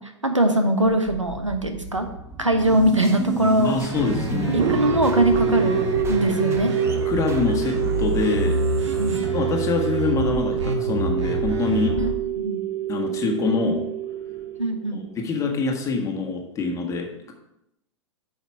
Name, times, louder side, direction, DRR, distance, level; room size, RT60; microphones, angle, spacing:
voice 1, 0.2-2.1 2.4-3.8 4.5-5.8 6.1-6.7 9.0-9.2 12.0-12.1 12.4-12.6 14.6-15.0, right 1 dB, 85° right, 6 dB, 1.1 m, -21 dB
sound 1, 0.8-10.0, right 3 dB, 15° right, 1.2 m, -34 dB
sound 2, 2.6-12.1, equal, 70° right, 1.7 m, -29 dB
voice 2, 3.6-4.6 7.0-8.6 9.3-12.0 12.9-13.8 14.9-17.3, left 4 dB, 20° left, 2 dB, 1.6 m, -25 dB
sound 3, 4.5-15.2, right 8 dB, 40° right, 0.9 m, -26 dB
8.9 x 5.7 x 4.6 m, 0.84 s
figure-of-eight pair, 100°, 16 cm